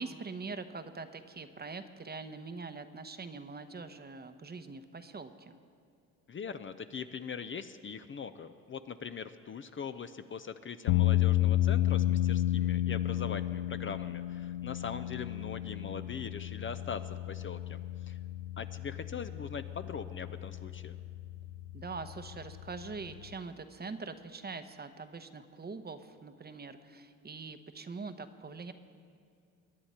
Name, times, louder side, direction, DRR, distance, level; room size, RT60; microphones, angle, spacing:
voice 1, 0.0-5.6 21.7-28.7, right 4 dB, 25° right, 9 dB, 0.9 m, -43 dB
voice 2, 6.3-17.8 18.0-18.2 18.6-21.0, left 6 dB, 35° left, 10 dB, 0.6 m, -41 dB
sound 1, 10.9-23.4, left 13 dB, 85° left, 0.6 m, -32 dB
22.0 x 9.9 x 4.4 m, 2.3 s
hypercardioid pair, 60°, 37 cm